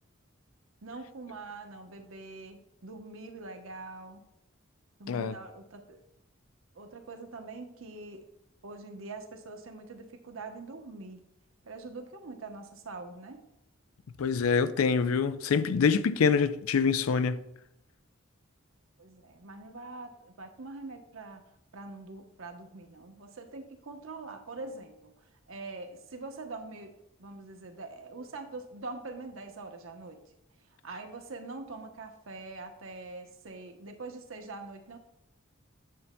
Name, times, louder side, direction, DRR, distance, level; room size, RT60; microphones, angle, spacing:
voice 1, 0.8-4.2 5.0-6.0 6.7-8.2 8.6-11.2 11.6-13.5 19.0-21.4 21.7-26.9 27.2-30.2 30.6-35.0, right 3 dB, 75° right, 0.9 m, -44 dB
voice 2, 14.2-17.4, left 5 dB, 85° left, 0.4 m, -25 dB
9.4 x 7.0 x 2.2 m
head